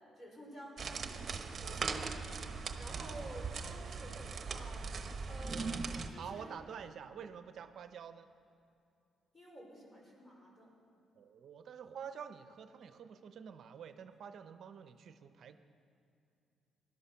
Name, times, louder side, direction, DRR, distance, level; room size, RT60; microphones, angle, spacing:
voice 1, 0.1-2.2 2.8-4.9 5.3-5.7 6.1-6.5 9.3-10.7, right 1 dB, 30° left, -2 dB, 5.0 m, -51 dB
sound 1, 0.8-6.1, right 4 dB, 45° right, 1.1 m, -40 dB
voice 2, 6.2-8.3 11.2-15.6, right 7 dB, 65° right, 10 dB, 0.7 m, -48 dB
18.5 x 12.0 x 5.7 m, 2.6 s
cardioid pair, 90°, 0 cm